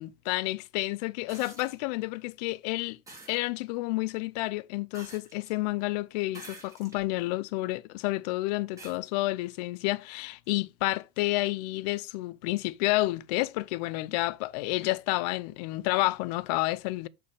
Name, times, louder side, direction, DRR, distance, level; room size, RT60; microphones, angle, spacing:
voice 1, 0.0-3.0 3.3-17.1, left 20 dB, 80° left, 0.4 m, -30 dB
sound 1, 1.3-1.8 3.1-3.4 4.9-5.6 6.3-7.1 7.7-7.8 8.8-9.0 10.4-10.5, right 2 dB, 15° right, 3.3 m, -48 dB
6.7 x 4.2 x 3.3 m
supercardioid pair, 105°, 21 cm